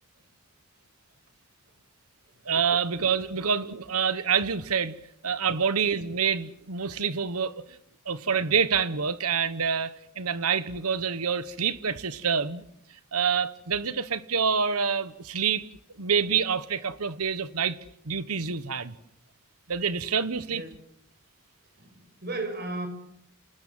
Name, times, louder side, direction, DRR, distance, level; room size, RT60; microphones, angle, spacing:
voice 1, 2.4-4.9 5.2-7.6 8.0-12.6 13.1-15.6 16.0-17.8 18.0-18.9 19.7-20.6, right 6 dB, 85° right, 1.2 m, -27 dB
voice 2, 21.8-22.9, right 2 dB, 50° right, 6.4 m, -35 dB
28.0 x 19.5 x 7.7 m
head